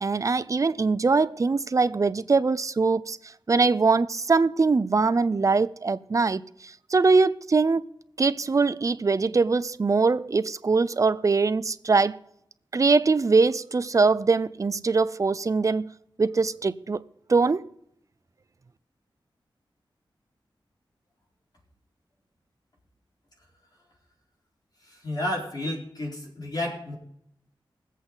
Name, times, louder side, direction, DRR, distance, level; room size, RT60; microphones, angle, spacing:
voice 1, 0.0-3.2 3.5-6.4 6.9-7.9 8.2-12.2 12.7-15.9 16.2-17.0 17.3-17.6, right 4 dB, 40° right, 0.5 m, -22 dB
voice 2, 24.9-27.0, left 1 dB, 50° left, 4.4 m, -31 dB
21.0 x 8.3 x 4.0 m
wide cardioid pair, 130°, 9 cm